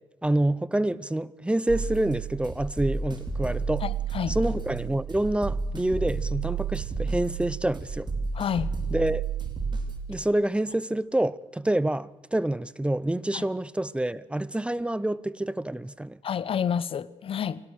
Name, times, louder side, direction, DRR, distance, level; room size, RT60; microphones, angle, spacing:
voice 1, 0.2-3.8 4.3-8.1 8.9-9.2 10.1-16.2, right 1 dB, 10° right, 0.8 m, -27 dB
sound 1, 1.7-10.0, right 5 dB, 45° right, 4.2 m, -31 dB
voice 2, 3.8-4.4 8.3-8.7 13.3-13.5 16.2-17.6, left 8 dB, 60° left, 0.9 m, -29 dB
24.5 x 17.5 x 6.6 m
cardioid pair, 65°, 11 cm